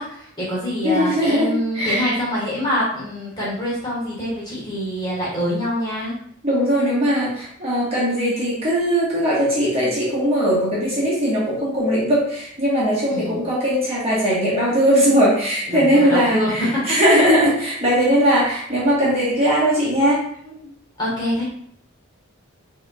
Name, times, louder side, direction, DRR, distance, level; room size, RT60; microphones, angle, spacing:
voice 1, 0.0-6.2 13.1-13.4 15.7-17.0 20.4-20.7 21.0-21.4, equal, 20° left, -7 dB, 1.4 m, -25 dB
voice 2, 0.8-2.2 6.4-20.2, equal, 30° right, -7 dB, 1.3 m, -19 dB
5.4 x 3.0 x 2.3 m, 0.65 s
head